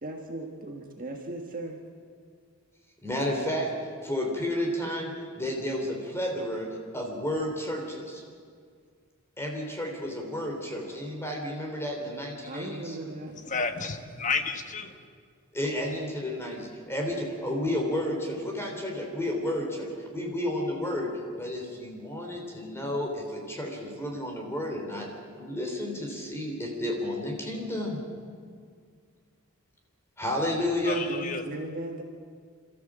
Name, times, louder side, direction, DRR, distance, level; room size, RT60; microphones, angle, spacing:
voice 1, 0.0-1.8 12.4-13.4 31.1-32.0, right 2 dB, 40° right, 1 dB, 1.6 m, -37 dB
voice 2, 3.0-3.7 4.0-6.7 6.9-8.2 9.4-12.9 15.5-21.1 21.4-25.1 25.4-28.0 30.2-31.0, left 1 dB, 10° left, 0 dB, 3.3 m, -31 dB
voice 3, 13.5-14.9 30.9-31.4, left 4 dB, 35° left, 7 dB, 1.4 m, -31 dB
28.5 x 14.0 x 7.5 m, 2.1 s
head